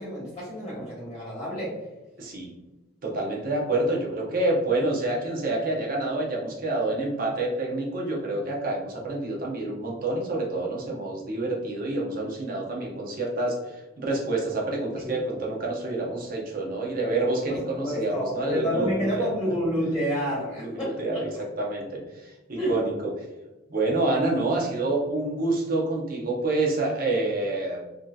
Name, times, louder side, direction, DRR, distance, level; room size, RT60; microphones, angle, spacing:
voice 1, 0.0-1.8 15.0-15.2 17.5-17.6 17.9-21.2 22.5-22.8, equal, 20° left, -7 dB, 1.1 m, -29 dB
voice 2, 2.2-2.5 3.0-19.3 20.6-21.3 21.6-22.9 23.7-27.8, right 2 dB, 45° right, -1 dB, 0.7 m, -28 dB
3.6 x 2.7 x 2.3 m, 1.1 s
head